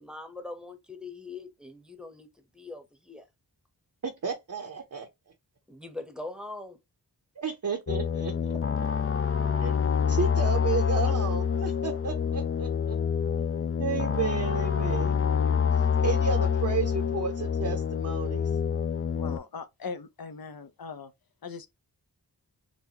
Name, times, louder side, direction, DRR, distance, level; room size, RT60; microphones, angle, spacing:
voice 1, 0.0-2.3 2.5-3.3 5.7-6.8, left 2 dB, ahead, 0.9 m, -41 dB
voice 2, 4.0-5.1 7.4-8.5 9.6-9.8 10.1-13.0 13.8-15.2 16.0-18.5, right 5 dB, 50° right, 0.7 m, -32 dB
sound 1, 7.9-19.4, left 7 dB, 35° left, 0.4 m, -27 dB
voice 3, 19.2-21.1 21.4-21.7, left 5 dB, 60° left, 0.7 m, -40 dB
4.1 x 2.2 x 2.8 m
wide cardioid pair, 60°, 40 cm